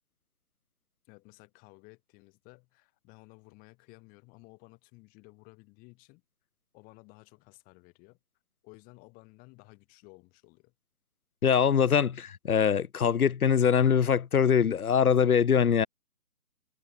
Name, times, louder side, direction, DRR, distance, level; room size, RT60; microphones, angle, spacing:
voice 1, 1.0-6.2 6.7-8.2 8.6-10.7, left 27 dB, 20° left, 4.3 m, -55 dB
voice 2, 11.4-15.9, left 7 dB, 70° left, 1.3 m, -23 dB
hypercardioid pair, 150°, 46 cm